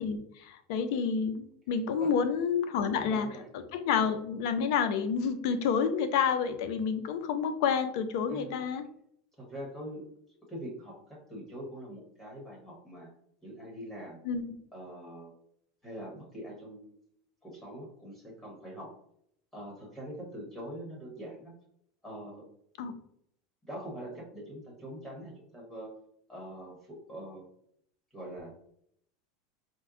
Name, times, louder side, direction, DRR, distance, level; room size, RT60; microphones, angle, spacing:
voice 1, 0.0-3.3 3.5-8.8 14.2-14.4 22.8-22.9, left 6 dB, 70° left, 10 dB, 0.4 m, -29 dB
voice 2, 2.8-3.5 8.3-8.6 9.4-10.0 10.5-11.0 11.3-13.1 13.4-14.2 14.7-15.3 15.8-16.9 17.4-18.9 19.5-21.5 22.0-22.4 23.6-25.9 26.3-27.5 28.1-28.5, equal, 10° left, -4 dB, 1.3 m, -43 dB
4.4 x 2.1 x 2.5 m, 0.70 s
supercardioid pair, 130°, 3 cm